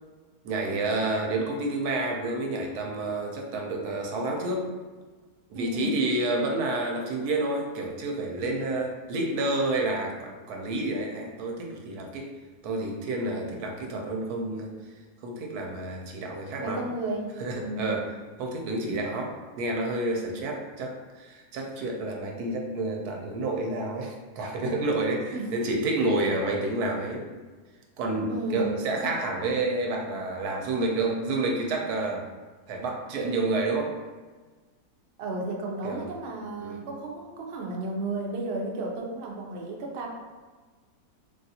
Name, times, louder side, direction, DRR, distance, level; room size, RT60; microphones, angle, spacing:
voice 1, 0.4-4.6 5.5-12.3 12.6-14.7 15.2-16.9 17.4-18.1 18.4-27.2 28.0-32.3 32.7-33.9 35.8-36.1 36.6-36.8, right 2 dB, 85° right, 1 dB, 1.1 m, -29 dB
voice 2, 5.5-6.0 16.6-18.0 25.3-25.5 28.3-28.8 35.2-40.1, right 2 dB, 65° right, -1 dB, 0.6 m, -33 dB
3.3 x 2.4 x 2.7 m, 1.4 s
omnidirectional pair, 1.6 m